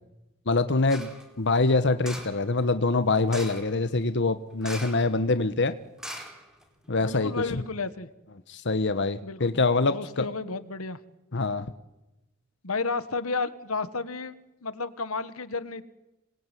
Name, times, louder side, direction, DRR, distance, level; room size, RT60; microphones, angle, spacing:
voice 1, 0.5-1.1 1.4-5.7 6.9-7.6 8.5-10.3 11.3-11.7, left 3 dB, 60° left, 11 dB, 1.2 m, -25 dB
sound 1, 0.9-1.2 2.0-2.4 3.3-3.7 4.6-5.1 5.4-5.5 6.0-6.9 7.3-7.4, equal, 5° right, 4.3 m, -40 dB
voice 2, 7.0-8.1 9.2-9.6 9.9-11.0 12.6-14.3 14.6-15.8, left 4 dB, 90° left, 14 dB, 1.6 m, -32 dB
26.5 x 20.5 x 9.3 m, 0.97 s
head